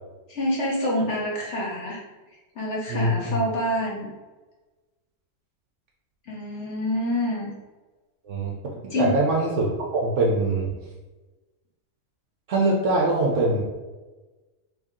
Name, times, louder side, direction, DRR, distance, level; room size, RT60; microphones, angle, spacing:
voice 1, 0.3-2.0 2.6-4.1 6.3-7.5 8.9-9.2, left 1 dB, 55° left, -3 dB, 0.9 m, -27 dB
voice 2, 2.9-3.4 8.2-10.7 12.5-13.6, right 2 dB, 60° right, -2 dB, 0.9 m, -23 dB
3.2 x 2.7 x 3.6 m, 1.2 s
omnidirectional pair, 1.6 m